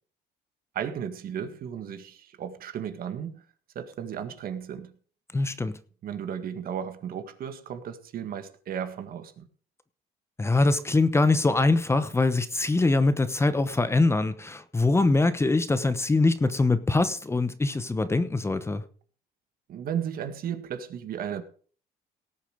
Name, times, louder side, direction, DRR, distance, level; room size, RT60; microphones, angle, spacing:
voice 1, 0.7-3.4 3.8-5.0 6.0-9.5 19.7-21.4, right 8 dB, 60° right, 1.8 m, -34 dB
voice 2, 5.3-5.8 10.4-18.8, left 3 dB, 15° left, 1.0 m, -23 dB
18.0 x 7.3 x 5.0 m
cardioid pair, 110°, 17 cm